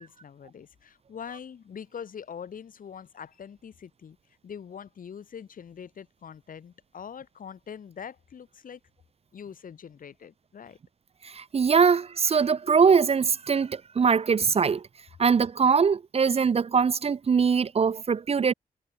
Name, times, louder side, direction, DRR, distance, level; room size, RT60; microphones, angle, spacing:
voice 1, 0.0-4.2 4.4-8.8 9.3-10.8, left 7 dB, 60° left, 1.2 m, -43 dB
voice 2, 11.2-14.8 15.2-18.5, right 6 dB, 40° right, 0.5 m, -22 dB
cardioid pair, 60°, 16 cm